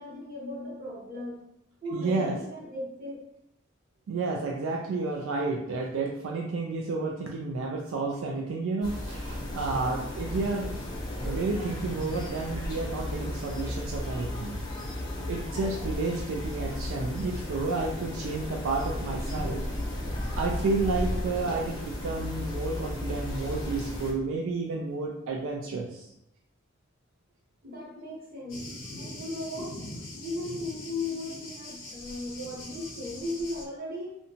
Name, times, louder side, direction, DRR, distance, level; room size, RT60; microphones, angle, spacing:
voice 1, 0.0-1.4 1.8-3.2 27.6-28.7 29.0-29.7 30.1-34.2, left 1 dB, 45° right, -4 dB, 0.8 m, -36 dB
voice 2, 1.9-2.4 4.1-10.7 11.2-14.6 15.3-19.6 20.3-26.1, right 3 dB, 80° right, 0 dB, 0.3 m, -31 dB
sound 1, 8.8-24.1, left 1 dB, 20° left, 0.5 m, -34 dB
Thunder, 28.5-33.7, left 1 dB, 75° left, 0.6 m, -42 dB
2.7 x 2.2 x 2.6 m, 0.81 s
head